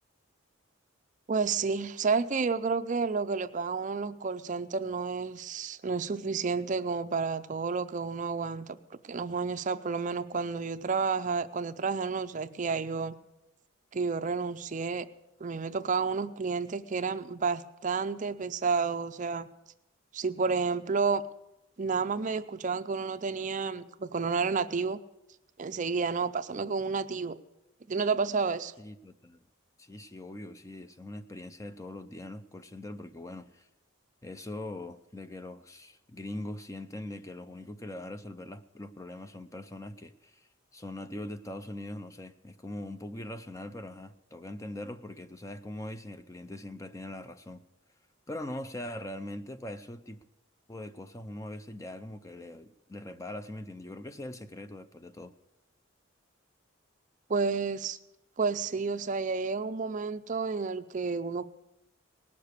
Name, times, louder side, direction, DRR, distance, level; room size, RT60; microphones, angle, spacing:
voice 1, 1.3-8.8 9.1-13.1 13.9-15.1 15.4-19.5 20.1-21.2 21.8-25.0 25.6-27.4 27.9-28.7 57.3-58.0 58.4-61.4, right 4 dB, 40° right, 0.5 m, -30 dB
voice 2, 28.8-29.4 29.8-33.7 34.2-47.6 48.3-50.2 50.7-55.3, left 1 dB, 15° left, 0.5 m, -42 dB
18.5 x 6.8 x 8.1 m
head